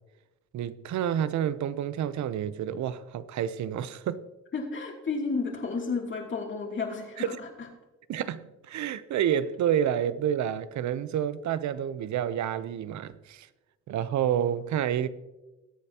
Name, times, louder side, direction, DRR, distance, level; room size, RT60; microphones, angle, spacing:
voice 1, 0.5-4.2 7.2-7.4 8.1-13.5 13.9-15.1, right 9 dB, 70° right, 0.7 m, -29 dB
voice 2, 4.5-7.5, left 4 dB, 40° left, 2.9 m, -32 dB
20.5 x 8.3 x 2.9 m
cardioid pair, 90°, 30 cm